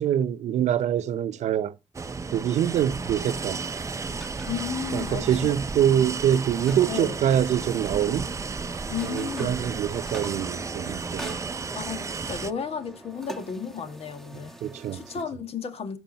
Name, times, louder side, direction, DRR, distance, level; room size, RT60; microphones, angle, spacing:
voice 1, 0.0-1.7 2.3-3.6 4.9-8.3 9.0-11.4 14.6-15.0, right 10 dB, 80° right, 0.6 m, -25 dB
sound 1, 1.9-12.5, right 4 dB, 25° right, 0.6 m, -33 dB
sound 2, 4.1-15.2, right 1 dB, ahead, 1.5 m, -45 dB
voice 2, 4.5-5.3 6.9-7.2 8.9-9.6 11.8-14.6 14.9-16.0, left 6 dB, 60° left, 1.7 m, -33 dB
14.0 x 6.3 x 2.9 m
cardioid pair, 85°, 12 cm